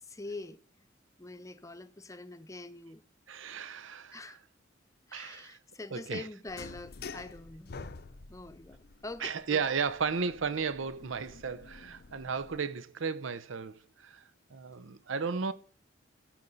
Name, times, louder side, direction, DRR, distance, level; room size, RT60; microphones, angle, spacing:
voice 1, 0.1-0.6 1.2-3.0 4.1-4.4 5.1-7.8 8.3-9.6, left 2 dB, 15° left, 0.7 m, -44 dB
voice 2, 3.3-4.4 5.1-5.6 5.9-6.3 9.2-14.2 14.5-15.5, right 5 dB, 75° right, 0.7 m, -34 dB
sound 1, 6.5-12.6, left 4 dB, 55° left, 0.7 m, -49 dB
16.5 x 6.4 x 4.0 m
head